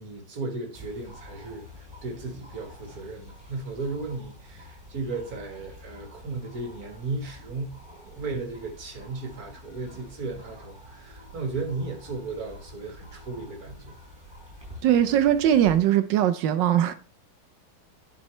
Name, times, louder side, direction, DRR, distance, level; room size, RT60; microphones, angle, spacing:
voice 1, 0.0-14.0, right 3 dB, 50° right, 2.0 m, -35 dB
sound 1, 0.7-15.8, left 1 dB, 10° right, 4.7 m, -47 dB
voice 2, 14.8-16.9, right 10 dB, 75° right, 1.2 m, -20 dB
10.5 x 5.5 x 3.2 m
omnidirectional pair, 2.1 m